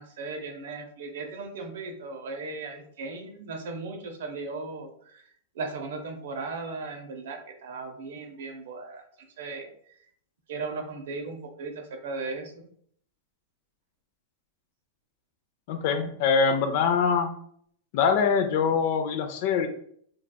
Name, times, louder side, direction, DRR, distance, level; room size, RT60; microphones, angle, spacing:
voice 1, 0.0-5.2 5.5-9.0 9.4-9.7 10.5-12.5, right 3 dB, 75° right, 4 dB, 0.6 m, -37 dB
voice 2, 15.7-17.3 17.9-19.7, left 6 dB, 50° left, 7 dB, 0.4 m, -23 dB
2.8 x 2.3 x 2.2 m, 0.63 s
supercardioid pair, 145°, 0 cm